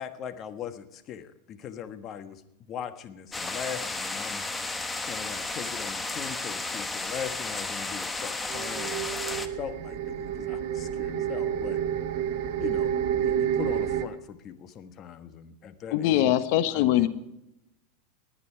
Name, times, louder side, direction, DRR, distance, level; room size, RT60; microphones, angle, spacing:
voice 1, 0.0-2.4 2.7-4.5 5.1-11.8 12.6-12.9 13.2-16.3 16.7-17.1, left 8 dB, 35° left, 10 dB, 1.4 m, -40 dB
sound 1, 3.3-9.5, left 3 dB, 10° left, 1.1 m, -33 dB
sound 2, 8.5-14.1, right 9 dB, 60° right, 1.6 m, -29 dB
voice 2, 15.9-17.1, left 12 dB, 60° left, 12 dB, 1.1 m, -22 dB
19.0 x 9.7 x 4.6 m, 0.85 s
supercardioid pair, 120°, 0 cm